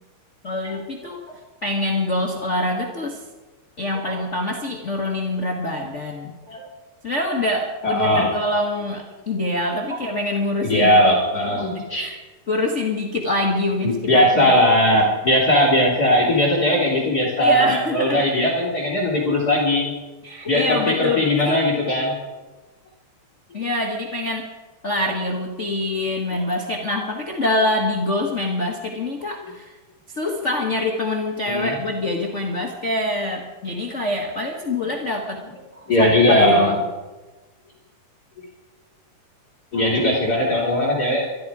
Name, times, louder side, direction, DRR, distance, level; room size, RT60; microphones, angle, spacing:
voice 1, 0.4-1.2 1.6-3.2 3.8-6.3 7.0-11.0 11.9-12.2 12.5-14.5 17.4-18.3 20.2-21.6 23.5-24.5 24.8-29.8 30.1-35.4 36.0-36.8, left 2 dB, 50° left, 0 dB, 0.8 m, -25 dB
voice 2, 7.8-8.3 10.6-12.0 13.8-19.9 20.5-22.1 26.9-27.0 31.5-31.7 33.9-34.0 35.9-36.7 39.7-41.2, left 1 dB, 30° left, -2 dB, 3.5 m, -19 dB
24.0 x 12.5 x 4.8 m, 1.2 s
omnidirectional pair, 3.8 m